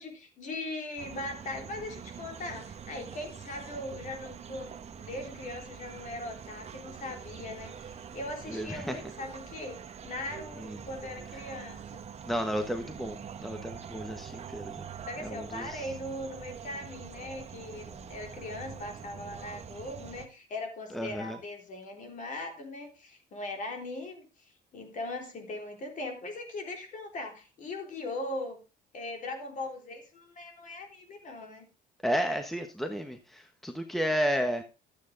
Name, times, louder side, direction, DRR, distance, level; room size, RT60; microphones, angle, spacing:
voice 1, 0.0-12.0 15.1-28.6 28.9-31.7, left 2 dB, 50° left, 3.7 m, -40 dB
sound 1, 1.0-20.3, right 7 dB, 40° right, 1.2 m, -45 dB
voice 2, 8.5-9.0 10.6-10.8 12.2-14.9 15.2-15.9 20.9-21.4 32.0-34.6, equal, ahead, 1.2 m, -32 dB
12.5 x 8.3 x 3.9 m
cardioid pair, 110°, 17 cm